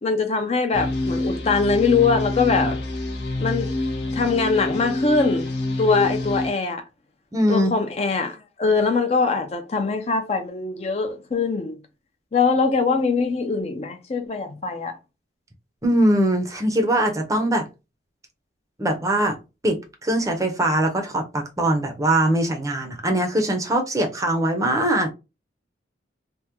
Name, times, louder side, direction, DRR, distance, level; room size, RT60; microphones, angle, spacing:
voice 1, 0.0-2.8 3.4-3.7 4.1-5.5 5.8-6.8 7.5-11.8 12.3-15.0, left 4 dB, 35° left, 0.4 m, -22 dB
sound 1, 0.7-6.5, left 2 dB, 70° left, 1.0 m, -27 dB
voice 2, 7.3-7.7 15.8-17.6 18.8-19.4 19.6-25.1, right 1 dB, 15° right, 0.5 m, -21 dB
3.4 x 2.1 x 2.9 m
head